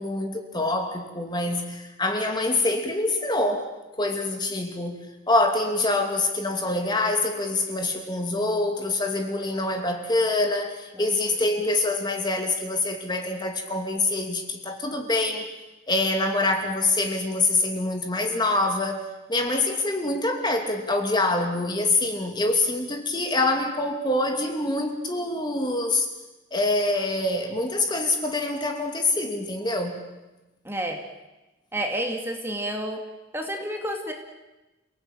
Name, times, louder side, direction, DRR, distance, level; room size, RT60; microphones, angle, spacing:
voice 1, 0.0-3.7 4.0-15.5 15.9-19.0 19.3-26.1 26.5-30.2, left 2 dB, 20° left, 3 dB, 2.8 m, -25 dB
voice 2, 30.6-31.0 31.7-33.0 33.3-34.1, right 1 dB, 10° right, 3 dB, 2.5 m, -30 dB
29.5 x 18.5 x 9.1 m, 1.1 s
head